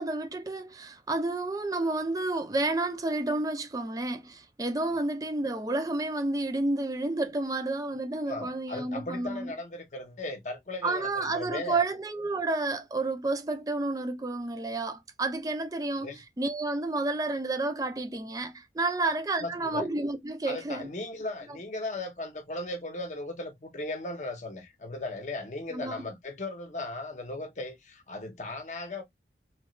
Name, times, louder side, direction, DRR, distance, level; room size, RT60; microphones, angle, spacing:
voice 1, 0.0-9.5 10.8-20.9 25.7-26.0, right 2 dB, 20° right, 0.4 m, -30 dB
voice 2, 8.3-11.8 16.0-16.2 19.4-19.9 20.5-29.0, left 2 dB, 40° left, 0.8 m, -37 dB
3.1 x 2.3 x 3.0 m
head